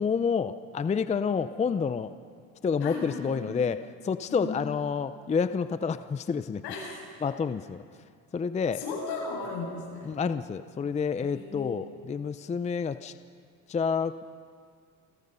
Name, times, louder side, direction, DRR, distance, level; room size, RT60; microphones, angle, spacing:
voice 1, 0.0-2.1 2.6-6.6 7.2-7.8 8.3-8.8 10.0-13.1 13.7-14.3, left 6 dB, 20° left, 12 dB, 0.5 m, -29 dB
voice 2, 2.8-3.4 4.3-4.7 6.6-7.0 8.7-10.1 11.2-11.8, left 4 dB, 80° left, -1 dB, 7.0 m, -36 dB
29.0 x 16.0 x 5.6 m, 2.1 s
cardioid pair, 105°, 37 cm